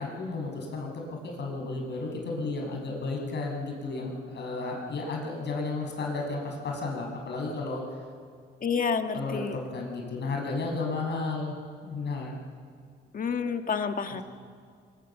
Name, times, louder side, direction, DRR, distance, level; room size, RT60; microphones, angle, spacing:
voice 1, 0.0-7.8 9.1-11.6 11.8-12.4 14.1-14.2, left 3 dB, 60° left, 0 dB, 6.7 m, -33 dB
voice 2, 8.6-9.6 13.1-14.2, left 6 dB, 45° left, 7 dB, 1.6 m, -29 dB
23.0 x 22.0 x 7.3 m, 2.1 s
cardioid pair, 90°, 20 cm